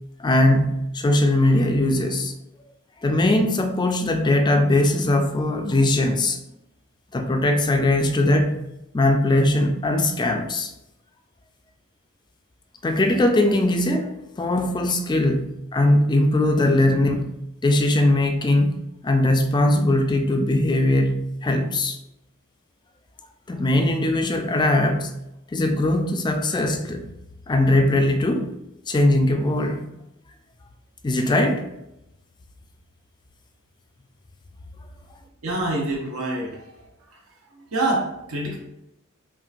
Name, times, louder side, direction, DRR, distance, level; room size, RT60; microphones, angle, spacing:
voice 1, 0.2-2.3 3.0-6.4 7.1-8.6 8.9-10.7 12.8-17.3 17.6-22.0 23.5-25.1 25.5-27.1 27.5-28.5 28.9-29.9 31.0-31.7, left 1 dB, 20° left, 5 dB, 0.3 m, -20 dB
voice 2, 35.4-36.7 37.6-38.6, right 2 dB, 90° right, -1 dB, 1.1 m, -26 dB
5.6 x 2.5 x 2.5 m, 0.87 s
head